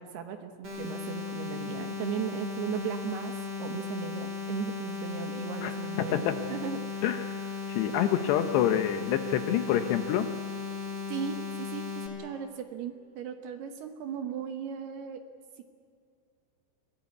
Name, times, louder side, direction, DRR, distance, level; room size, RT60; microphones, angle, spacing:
voice 1, 0.0-7.1 7.9-8.1 11.1-15.2 15.6-15.7, right 8 dB, 70° right, 7 dB, 2.7 m, -37 dB
sound 1, 0.6-12.1, left 5 dB, 25° right, 4.9 m, -36 dB
voice 2, 7.0-7.4 7.7-10.3, left 10 dB, 75° left, 8 dB, 2.7 m, -27 dB
24.0 x 18.0 x 9.4 m, 2.3 s
omnidirectional pair, 5.6 m